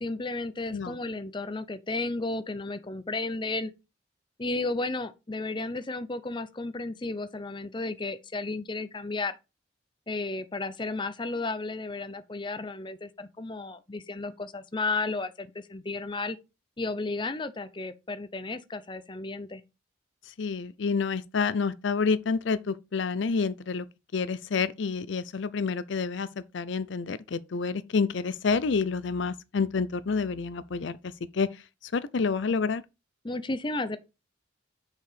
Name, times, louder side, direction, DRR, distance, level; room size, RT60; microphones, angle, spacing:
voice 1, 0.0-3.7 4.4-9.3 10.1-16.4 16.8-19.6 33.2-34.0, left 3 dB, 25° left, 0.6 m, -33 dB
voice 2, 20.4-23.9 24.1-26.3 26.5-31.0 31.3-31.5 31.8-32.8, left 5 dB, 70° left, 0.5 m, -28 dB
6.5 x 4.7 x 4.9 m
head